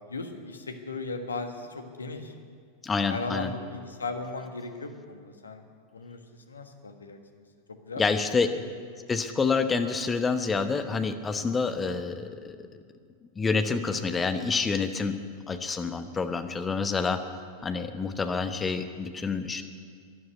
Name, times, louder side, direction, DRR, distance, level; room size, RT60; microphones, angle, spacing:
voice 1, 0.0-2.3 3.1-5.6 5.9-6.2 6.5-7.2 7.7-8.0, left 3 dB, 75° left, 6 dB, 1.4 m, -37 dB
voice 2, 2.8-3.5 8.0-8.5 9.1-12.6 13.4-15.1 15.5-17.2 17.6-19.6, left 4 dB, 15° left, 8 dB, 1.0 m, -27 dB
12.5 x 11.0 x 9.6 m, 2.1 s
figure-of-eight pair, 90°, 0 cm